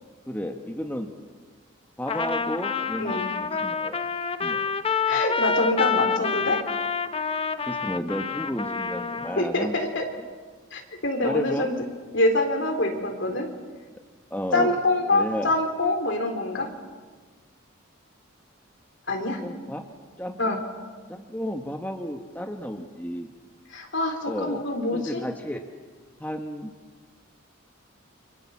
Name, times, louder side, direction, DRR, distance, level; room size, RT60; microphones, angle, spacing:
voice 1, 0.3-1.1 2.0-3.2 3.5-4.0 4.4-4.6 7.7-9.7 11.2-11.7 14.3-14.8 15.1-15.5 19.4-19.8 20.2-20.6 21.1-23.3 24.3-24.6 24.9-25.6 26.2-26.7, equal, 10° left, 3 dB, 1.3 m, -32 dB
Trumpet, 2.1-9.4, left 5 dB, 25° left, 0.8 m, -28 dB
voice 2, 5.1-6.6 9.4-10.1 10.7-11.7 12.1-13.5 14.5-16.7 19.1-19.4 20.4-20.6 23.7-25.2, left 2 dB, 60° left, 4 dB, 3.8 m, -25 dB
29.5 x 25.5 x 7.2 m, 1.5 s
head